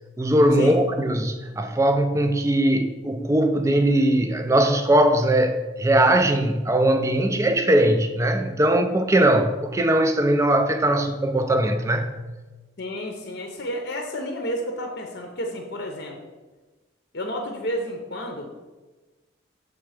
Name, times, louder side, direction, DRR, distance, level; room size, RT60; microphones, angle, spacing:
voice 1, 0.2-12.1, right 1 dB, 15° right, 6 dB, 0.4 m, -20 dB
voice 2, 12.8-16.2 17.1-18.5, equal, 55° left, 3 dB, 0.7 m, -31 dB
6.8 x 3.4 x 4.8 m, 1.2 s
head